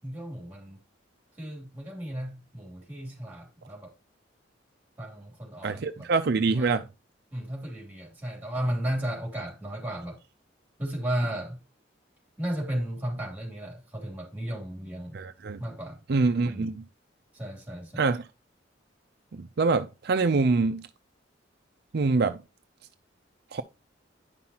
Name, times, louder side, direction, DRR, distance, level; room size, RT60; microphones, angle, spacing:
voice 1, 0.0-0.8 1.4-3.9 5.0-6.1 6.5-6.8 7.3-10.2 10.8-11.6 12.4-15.2 15.6-16.7 17.3-18.0, right 1 dB, 10° right, 2.9 m, -34 dB
voice 2, 5.6-6.8 15.1-15.6 16.1-16.8 18.0-18.2 19.3-20.9 21.9-22.4 23.5-23.6, right 3 dB, 60° right, 0.5 m, -25 dB
9.6 x 5.6 x 2.9 m
head